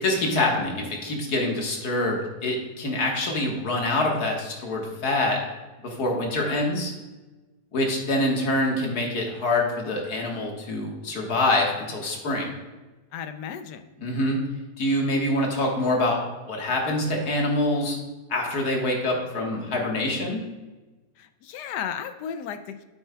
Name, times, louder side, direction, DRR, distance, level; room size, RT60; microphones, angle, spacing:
voice 1, 0.0-5.4 5.8-6.9 7.7-12.5 14.0-14.4 14.8-16.2 16.4-18.0 18.3-20.4, left 1 dB, 65° left, 0 dB, 2.0 m, -25 dB
voice 2, 13.1-13.9 21.2-22.8, left 8 dB, 85° left, 9 dB, 1.2 m, -34 dB
8.8 x 8.7 x 2.3 m, 1.2 s
omnidirectional pair, 1.8 m